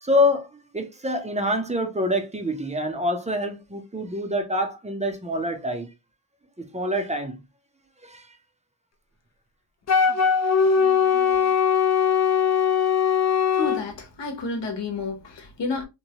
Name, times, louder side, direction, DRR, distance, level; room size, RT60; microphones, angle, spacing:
voice 1, 0.0-5.9 6.6-7.4 8.0-8.2 10.8-11.5, left 1 dB, 15° right, 0.6 m, -26 dB
Wind instrument woodwind instrument, 9.9-13.8, left 7 dB, 40° left, 0.5 m, -20 dB
voice 2, 13.5-15.9, left 3 dB, 65° left, 0.9 m, -30 dB
3.0 x 2.2 x 2.7 m
wide cardioid pair, 120°, 45 cm